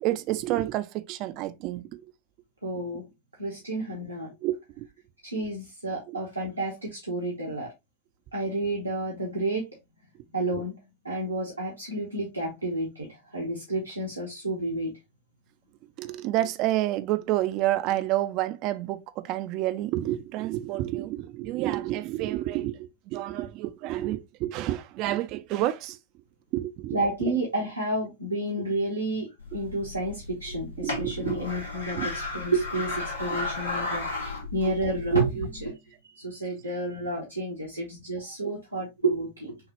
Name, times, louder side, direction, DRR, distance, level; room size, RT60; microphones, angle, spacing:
voice 1, 0.0-2.0 4.4-4.9 6.1-6.2 16.0-26.0 26.5-27.3 30.8-31.3 31.9-32.1 33.3-33.4, right 15 dB, 40° right, 0.5 m, -29 dB
voice 2, 2.6-3.0 3.4-4.3 5.2-7.7 8.3-9.6 10.3-10.8 11.0-14.9 26.9-29.3 29.5-35.7 36.2-39.6, right 2 dB, 85° right, 1.1 m, -30 dB
sound 1, 29.4-35.6, left 2 dB, 75° left, 1.7 m, -34 dB
6.2 x 2.4 x 2.9 m
figure-of-eight pair, 90°, 0 cm